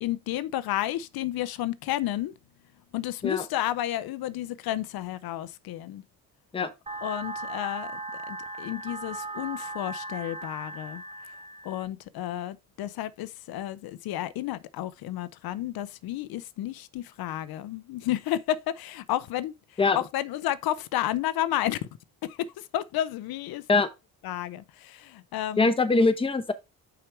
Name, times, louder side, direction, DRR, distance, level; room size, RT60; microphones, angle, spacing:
voice 1, 0.0-2.3 2.9-6.0 7.0-8.0 8.3-11.0 11.6-21.8 22.2-23.6 24.2-25.7, left 13 dB, 75° left, 0.6 m, -31 dB
sound 1, 6.9-11.9, right 2 dB, 15° right, 0.8 m, -38 dB
voice 2, 25.6-26.5, left 3 dB, 15° left, 0.8 m, -22 dB
6.0 x 4.9 x 4.5 m
cardioid pair, 135°, 37 cm